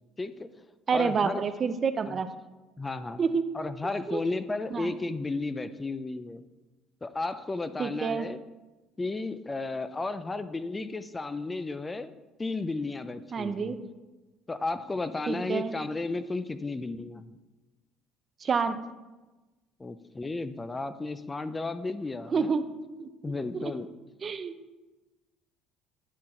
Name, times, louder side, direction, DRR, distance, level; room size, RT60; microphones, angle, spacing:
voice 1, 0.2-0.5 0.9-1.4 2.1-2.2 2.8-3.2 3.5-6.4 7.0-8.4 9.0-12.1 12.4-13.7 14.5-17.4 19.8-22.6 23.2-23.9, left 3 dB, 20° left, 12 dB, 0.4 m, -33 dB
voice 2, 0.9-2.3 3.2-3.4 4.1-4.2 4.7-4.9 7.8-8.3 13.3-13.8 15.3-15.7 18.4-18.8 22.3-22.7 23.0-23.6 24.2-24.5, right 5 dB, 35° right, 11 dB, 0.5 m, -28 dB
9.9 x 3.9 x 4.3 m, 1.1 s
cardioid pair, 100°, 0 cm